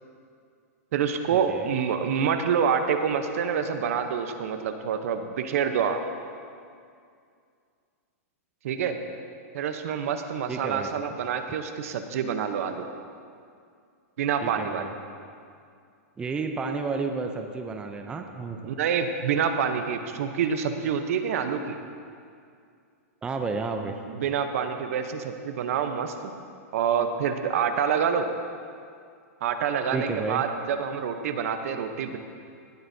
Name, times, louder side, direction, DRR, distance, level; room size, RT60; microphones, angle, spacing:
voice 1, 0.9-6.0 8.6-9.0 9.5-12.9 14.2-14.9 18.6-21.8 24.1-26.1 26.7-28.3 29.4-32.2, right 7 dB, 65° right, 7 dB, 0.8 m, -27 dB
voice 2, 10.5-10.9 14.4-14.9 16.2-18.6 23.2-23.9 29.9-30.4, right 4 dB, 10° right, 4 dB, 0.5 m, -31 dB
17.5 x 7.9 x 2.7 m, 2.3 s
hypercardioid pair, 145°, 9 cm